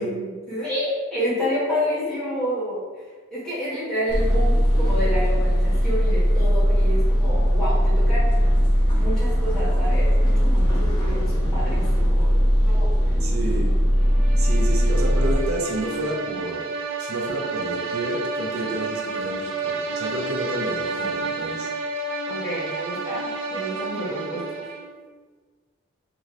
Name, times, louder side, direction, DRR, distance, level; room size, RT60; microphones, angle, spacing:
voice 1, 0.0-2.8 3.3-8.3 8.9-12.3 12.6-13.1 22.3-24.4, equal, 5° left, -11 dB, 1.2 m, -29 dB
sound 1, 4.1-15.4, equal, 20° left, 0.5 m, -19 dB
voice 2, 13.2-13.8 14.4-16.6 17.0-21.7, right 2 dB, 90° right, -1 dB, 0.7 m, -30 dB
sound 2, 14.1-25.0, right 3 dB, 60° right, 0.3 m, -30 dB
2.7 x 2.6 x 3.0 m, 1.4 s
head